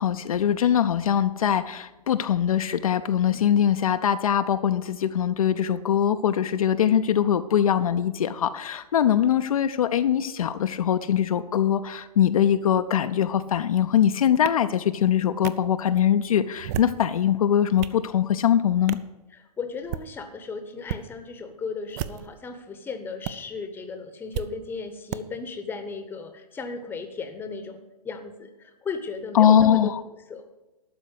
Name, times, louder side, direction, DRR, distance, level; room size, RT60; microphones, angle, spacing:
voice 1, 0.0-19.0 29.3-30.0, left 9 dB, 60° left, 9 dB, 0.5 m, -22 dB
sound 1, 14.5-14.6 15.4-15.5 16.5-17.0 17.5-18.0 18.9-19.1 19.8-20.1 20.8-21.0 21.9-22.4 23.2-23.3 24.3-24.5 25.1-25.2, right 11 dB, 25° right, 0.4 m, -33 dB
voice 2, 19.3-29.9 30.3-30.5, left 4 dB, 10° left, 8 dB, 0.9 m, -36 dB
12.0 x 4.5 x 7.9 m, 1.1 s
figure-of-eight pair, 120°, 20 cm